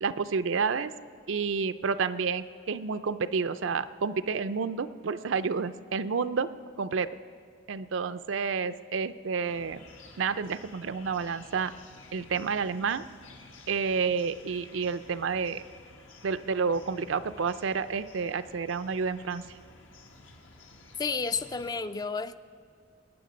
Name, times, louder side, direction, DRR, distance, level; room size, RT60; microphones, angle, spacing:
voice 1, 0.0-0.9 1.3-6.5 6.8-7.1 7.7-9.8 10.2-11.7 12.1-13.0 13.7-15.6 16.2-19.4, right 5 dB, 80° right, 12 dB, 0.5 m, -30 dB
sound 1, 9.4-21.8, left 2 dB, 80° left, 1.6 m, -52 dB
voice 2, 21.0-22.4, left 5 dB, 20° left, 12 dB, 0.3 m, -31 dB
21.5 x 9.3 x 5.1 m, 2.2 s
head